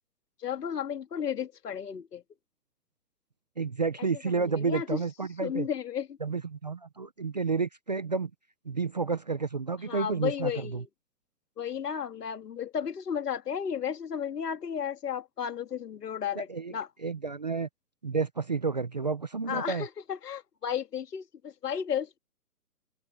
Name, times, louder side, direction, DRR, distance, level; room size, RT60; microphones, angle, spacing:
voice 1, 0.4-2.2 4.3-5.0 5.4-6.2 9.9-10.9 11.6-16.9 19.5-22.2, left 8 dB, 70° left, 2.2 m, -33 dB
voice 2, 3.6-5.7 6.2-8.3 8.7-10.8 16.4-16.7 17.0-17.7 18.0-19.9, right 4 dB, 25° right, 0.6 m, -30 dB
hypercardioid pair, 165°, 49 cm